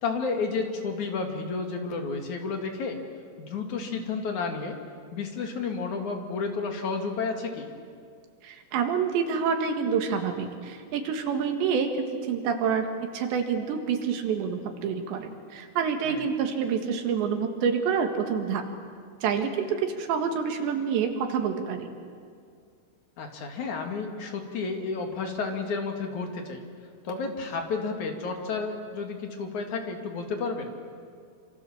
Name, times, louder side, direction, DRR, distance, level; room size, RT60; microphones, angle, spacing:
voice 1, 0.0-3.0 3.4-4.8 5.1-7.7 16.0-16.3 23.2-26.6 27.0-30.8, left 4 dB, 50° left, 3 dB, 3.2 m, -31 dB
voice 2, 8.4-12.9 13.1-18.6 19.2-21.9, right 6 dB, 85° right, 5 dB, 4.1 m, -27 dB
27.0 x 26.5 x 7.3 m, 2.2 s
omnidirectional pair, 4.9 m